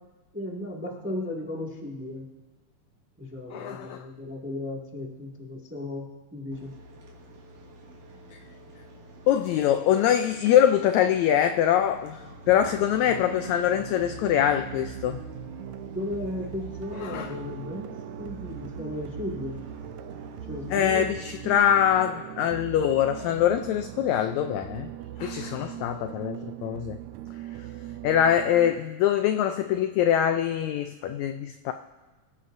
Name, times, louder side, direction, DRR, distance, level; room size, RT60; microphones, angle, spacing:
voice 1, 0.3-2.3 3.2-6.0 6.3-6.7 15.9-17.9 18.2-19.5 20.5-21.0, left 1 dB, 5° right, -2 dB, 0.8 m, -35 dB
voice 2, 3.5-4.0 9.3-12.2 12.5-15.2 16.9-17.4 20.7-24.9 25.2-27.0 28.0-31.7, left 10 dB, 85° left, 8 dB, 1.6 m, -23 dB
sound 1, 6.5-20.8, equal, 65° right, 3.5 m, -47 dB
sound 2, 12.4-28.7, right 14 dB, 85° right, 1.6 m, -40 dB
26.0 x 14.5 x 2.6 m, 1.2 s
omnidirectional pair, 3.8 m